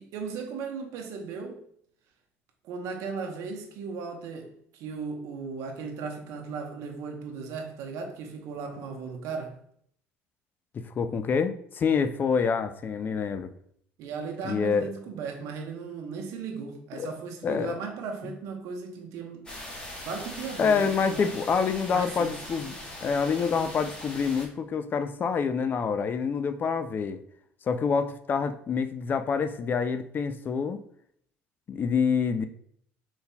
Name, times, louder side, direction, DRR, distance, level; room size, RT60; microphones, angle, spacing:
voice 1, 0.0-1.6 2.6-9.5 14.0-19.5 20.0-21.4 21.9-22.3, right 5 dB, 70° right, 0.9 m, -36 dB
voice 2, 10.7-13.5 14.4-14.9 17.0-17.1 17.4-17.8 20.6-22.7 23.0-27.2 27.7-30.8 31.7-32.5, left 6 dB, 35° left, 0.4 m, -27 dB
sound 1, 19.5-24.5, left 1 dB, 15° left, 1.1 m, -41 dB
4.1 x 3.9 x 2.2 m
supercardioid pair, 95°, 5 cm